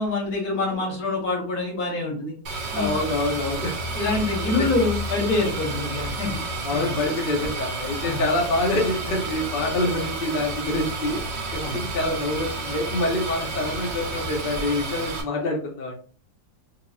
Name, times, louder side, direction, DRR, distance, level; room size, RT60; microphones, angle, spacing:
voice 1, 0.0-2.3 2.7-2.9 4.0-6.4 6.7-6.9 8.0-8.2 11.6-11.8, left 3 dB, 60° left, -1 dB, 1.8 m, -26 dB
sound 1, 2.5-15.2, right 2 dB, 50° right, 0.9 m, -31 dB
voice 2, 2.7-3.7 4.6-4.7 6.6-11.2 11.5-15.9, left 2 dB, 45° left, 0 dB, 0.8 m, -26 dB
4.6 x 2.6 x 2.4 m, 0.40 s
omnidirectional pair, 1.8 m